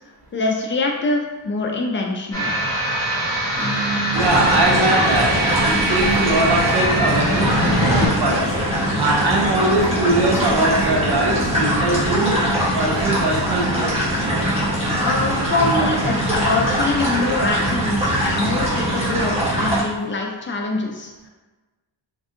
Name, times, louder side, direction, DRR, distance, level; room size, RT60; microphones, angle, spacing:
voice 1, 0.3-2.5 15.0-21.3, left 3 dB, 25° left, 0 dB, 0.4 m, -24 dB
sound 1, 2.3-8.1, right 1 dB, 10° left, 1.1 m, -23 dB
sound 2, 3.6-19.5, right 3 dB, 30° right, 1.2 m, -32 dB
sound 3, 4.1-19.8, equal, 15° right, 1.0 m, -22 dB
voice 2, 4.1-5.4 5.6-8.4 9.0-12.4 12.7-13.9, right 2 dB, 60° right, -1 dB, 0.7 m, -21 dB
3.4 x 2.6 x 2.5 m, 1.2 s
wide cardioid pair, 140°, 45 cm